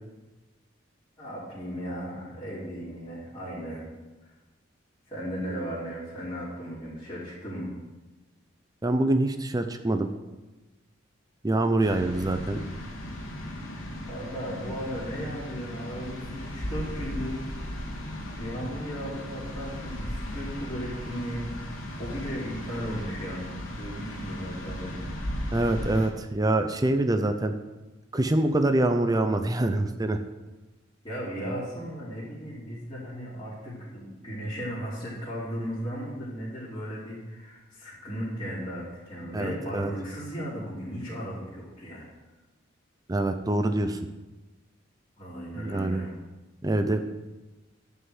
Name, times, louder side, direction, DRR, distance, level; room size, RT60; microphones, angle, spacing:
voice 1, 1.2-3.9 4.2-4.3 5.1-7.7 14.1-17.8 18.4-21.6 22.0-23.5 23.8-25.1 31.0-42.1 45.2-46.1, equal, 25° left, -10 dB, 3.5 m, -36 dB
voice 2, 8.8-10.1 11.4-12.6 25.5-27.5 28.1-30.2 39.3-39.9 43.1-44.0 45.6-46.0 46.6-47.0, right 1 dB, 20° right, 7 dB, 0.6 m, -25 dB
sound 1, 11.8-26.1, left 1 dB, 90° left, 2.4 m, -36 dB
11.0 x 5.6 x 8.0 m, 1.1 s
head